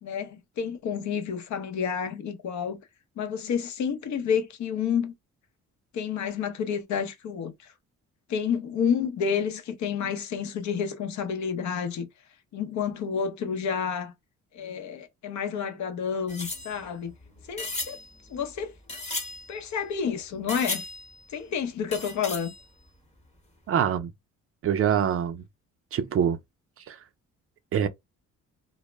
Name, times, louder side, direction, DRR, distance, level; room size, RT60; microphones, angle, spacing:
voice 1, 0.0-2.8 3.2-5.1 5.9-7.5 8.3-12.1 12.5-14.1 14.5-17.1 17.5-18.0 18.3-18.7 19.5-20.8 21.3-22.5, left 7 dB, 70° left, 0.6 m, -29 dB
sound 1, 16.3-20.1 20.5-21.4 21.9-23.1 23.4-23.5 23.7-23.8, left 2 dB, 20° left, 0.9 m, -37 dB
voice 2, 23.7-24.1 24.6-25.4 25.9-26.4 26.9-27.0 27.7-27.9, right 8 dB, 50° right, 0.4 m, -24 dB
2.0 x 2.0 x 3.2 m
cardioid pair, 90°, 30 cm